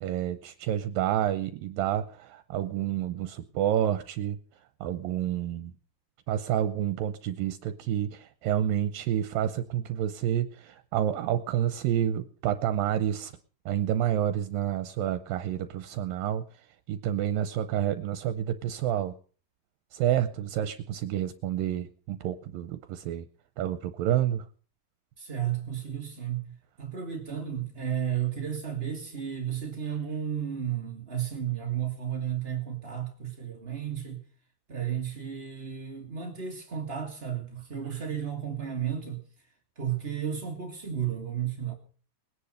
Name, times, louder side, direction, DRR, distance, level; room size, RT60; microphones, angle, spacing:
voice 1, 0.0-4.4 4.8-5.7 6.3-13.3 13.7-16.4 16.9-19.1 19.9-23.2 23.6-24.4, right 11 dB, 75° right, 2.5 m, -29 dB
voice 2, 25.2-34.2 34.7-39.2 39.7-41.7, right 9 dB, 25° right, 1.6 m, -33 dB
20.5 x 10.0 x 6.5 m
omnidirectional pair, 4.2 m